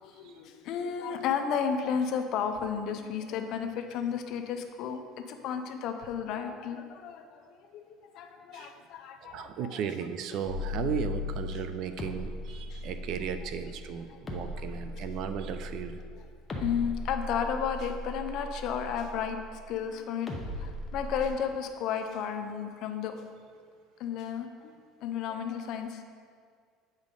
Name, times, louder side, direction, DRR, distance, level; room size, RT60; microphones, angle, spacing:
voice 1, 0.0-9.8 12.7-12.8 14.1-14.2 16.6-20.3 20.6-23.1 24.0-24.7 25.0-26.0, left 7 dB, 50° left, 6 dB, 0.6 m, -33 dB
voice 2, 9.2-16.0, right 8 dB, 50° right, 9 dB, 0.4 m, -36 dB
sound 1, 10.5-19.7 20.3-21.3, left 2 dB, 20° left, 0.7 m, -38 dB
8.1 x 5.2 x 3.8 m, 2.1 s
cardioid pair, 150°, 0 cm